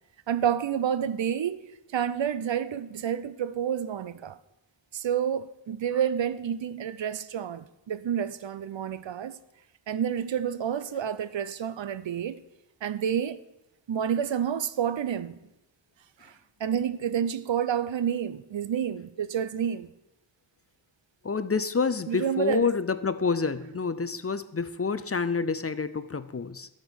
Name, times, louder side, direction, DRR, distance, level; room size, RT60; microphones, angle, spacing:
voice 1, 0.3-1.6 1.9-4.4 4.9-9.4 9.9-12.4 12.8-13.4 13.9-15.4 16.2-16.3 16.6-19.9 22.1-22.7, right 8 dB, 80° right, 0.6 m, -29 dB
voice 2, 21.2-26.7, left 4 dB, 35° left, 0.5 m, -28 dB
12.0 x 5.2 x 6.3 m
wide cardioid pair, 75°, 45 cm